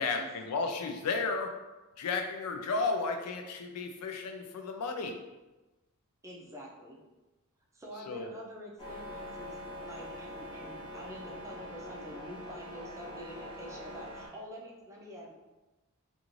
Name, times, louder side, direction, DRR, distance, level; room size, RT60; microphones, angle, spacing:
voice 1, 0.0-1.5 2.0-5.2 8.1-8.3, left 4 dB, 90° left, 5 dB, 0.4 m, -33 dB
voice 2, 6.2-7.0 7.7-15.3, equal, 15° right, -3 dB, 0.5 m, -47 dB
sound 1, 8.8-14.3, equal, 25° left, 0.8 m, -44 dB
2.5 x 2.4 x 3.0 m, 1.1 s
head